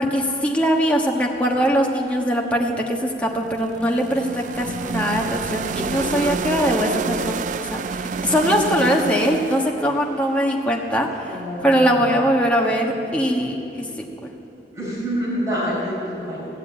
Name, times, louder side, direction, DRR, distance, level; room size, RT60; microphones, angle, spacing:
voice 1, 0.0-14.3, equal, 10° left, -1 dB, 1.3 m, -21 dB
sound 1, 3.2-11.2, right 5 dB, 45° right, 0.3 m, -29 dB
voice 2, 5.7-6.3 11.2-12.1 14.7-16.6, equal, 20° right, -7 dB, 4.9 m, -28 dB
15.0 x 10.5 x 8.6 m, 2.9 s
head